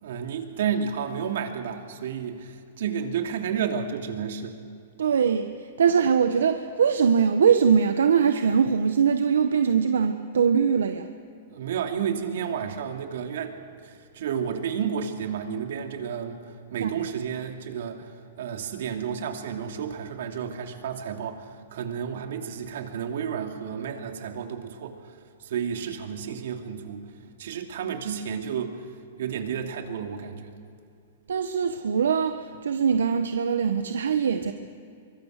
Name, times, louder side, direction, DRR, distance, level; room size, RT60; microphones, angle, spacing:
voice 1, 0.0-4.6 11.5-13.5 13.8-16.4 16.7-18.1 18.4-25.0 25.4-27.0 27.4-28.8 29.2-30.5, right 7 dB, 70° right, 4 dB, 2.8 m, -31 dB
voice 2, 5.0-11.1 16.8-16.9 31.3-34.5, right 6 dB, 90° right, 8 dB, 1.0 m, -22 dB
24.0 x 21.5 x 6.6 m, 2.5 s
hypercardioid pair, 140°, 0 cm